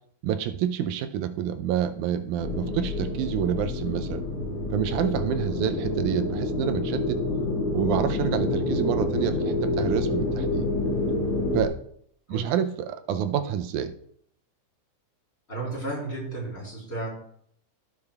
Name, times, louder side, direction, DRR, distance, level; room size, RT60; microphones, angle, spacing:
voice 1, 0.2-4.3 4.7-7.2 7.7-10.7 11.5-11.8 12.3-13.9, right 9 dB, 85° right, 8 dB, 2.0 m, -28 dB
sound 1, 2.4-11.7, left 2 dB, 75° left, 2.9 m, -27 dB
voice 2, 15.5-17.1, right 2 dB, 20° left, -5 dB, 4.3 m, -33 dB
15.5 x 6.6 x 2.3 m, 0.66 s
omnidirectional pair, 3.5 m